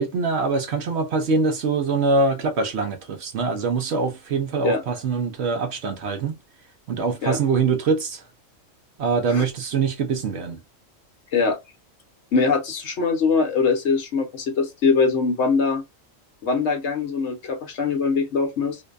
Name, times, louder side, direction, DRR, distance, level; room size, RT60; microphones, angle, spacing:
voice 1, 0.0-6.4 6.9-8.2 9.0-10.6, right 4 dB, 65° right, 0.7 m, -23 dB
voice 2, 12.3-15.8 16.4-18.8, left 4 dB, 65° left, 1.0 m, -22 dB
2.6 x 2.1 x 2.3 m
omnidirectional pair, 1.4 m